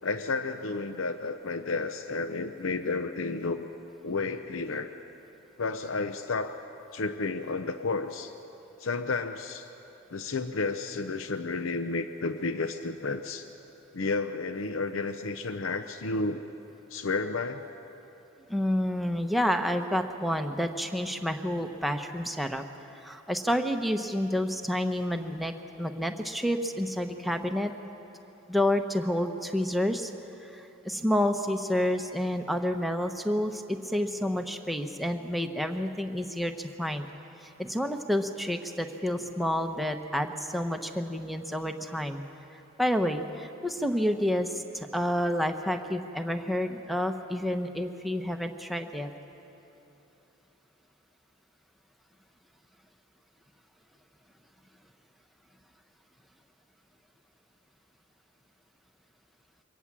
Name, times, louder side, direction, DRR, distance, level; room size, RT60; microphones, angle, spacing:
voice 1, 0.0-3.7 4.0-4.9 5.6-6.5 6.9-8.3 8.8-9.7 10.1-13.5 13.9-16.4 16.9-17.7, left 3 dB, 70° left, 9 dB, 0.7 m, -31 dB
voice 2, 18.5-22.6 22.9-27.7 28.5-30.1 30.4-37.1 37.4-42.2 42.8-49.1, equal, ahead, 5 dB, 0.8 m, -29 dB
23.5 x 18.0 x 7.4 m, 3.0 s
head